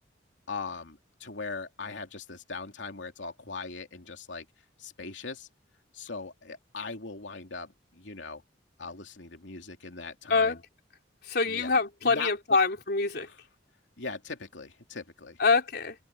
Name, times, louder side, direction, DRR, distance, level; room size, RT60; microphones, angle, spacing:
voice 1, 0.5-4.5 4.8-5.5 5.9-8.4 8.8-10.6 11.4-12.3 13.2-13.4 14.0-15.4, left 4 dB, 85° left, 2.9 m, -40 dB
voice 2, 11.3-13.3 15.4-16.0, left 4 dB, 60° left, 3.6 m, -25 dB
open air
head